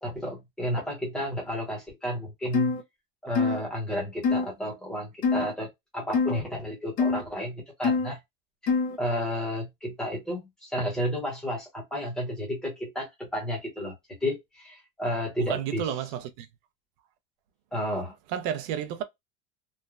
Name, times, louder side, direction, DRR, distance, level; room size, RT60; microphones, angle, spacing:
voice 1, 0.0-2.8 3.2-8.2 9.0-13.9 14.2-15.9 17.7-18.2, equal, ahead, 0.8 m, -32 dB
sound 1, 2.5-2.8 3.4-3.6 4.2-4.5 5.2-5.5 6.1-6.4 7.0-7.2 7.8-8.1 8.7-9.0, left 4 dB, 25° left, 0.4 m, -24 dB
voice 2, 15.5-16.5 18.3-19.0, right 9 dB, 50° right, 0.5 m, -31 dB
3.1 x 2.1 x 2.2 m
supercardioid pair, 175°, 36 cm